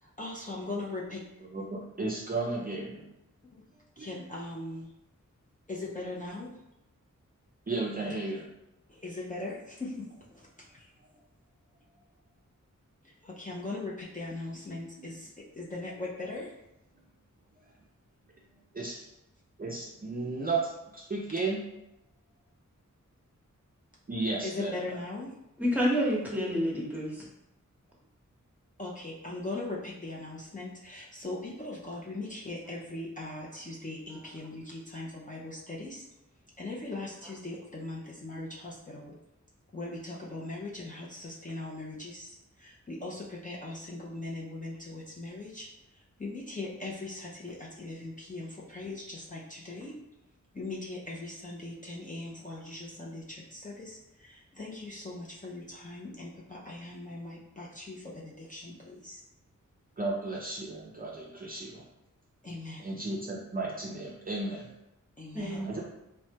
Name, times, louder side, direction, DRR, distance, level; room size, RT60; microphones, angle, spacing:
voice 1, 0.0-1.5 3.4-3.6 4.0-4.9 5.7-6.5 8.9-10.9 13.0-16.5 24.4-25.4 28.8-36.0 36.6-39.2 39.7-50.0 50.5-59.2 62.4-63.0 65.2-65.6, left 2 dB, 25° left, -5 dB, 0.5 m, -40 dB
voice 2, 1.5-3.0 4.0-4.1 7.7-8.5 15.0-15.1 18.7-19.1 19.6-21.6 24.1-24.8 60.0-61.8 62.8-64.7 65.6-65.8, right 3 dB, 30° right, -3 dB, 0.5 m, -34 dB
voice 3, 25.6-27.2 65.3-65.7, equal, 5° right, -4 dB, 0.8 m, -28 dB
3.1 x 2.2 x 2.7 m, 0.87 s
wide cardioid pair, 70°, 31 cm